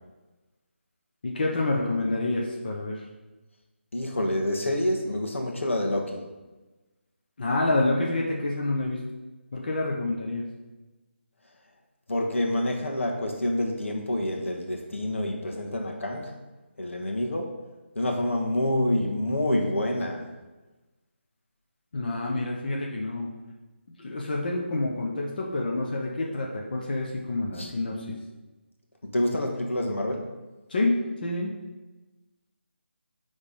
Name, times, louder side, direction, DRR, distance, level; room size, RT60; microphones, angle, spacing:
voice 1, 1.2-3.0 7.4-9.0 9.5-10.4 21.9-23.3 24.0-28.1 30.7-30.9 31.2-31.5, left 2 dB, 45° left, -2 dB, 1.1 m, -28 dB
voice 2, 3.9-6.2 12.1-16.3 16.8-17.5 17.9-20.2 27.6-27.7 29.0-30.3, left 1 dB, 80° left, 1 dB, 1.6 m, -27 dB
9.6 x 3.6 x 5.4 m, 1.2 s
figure-of-eight pair, 170°, 7 cm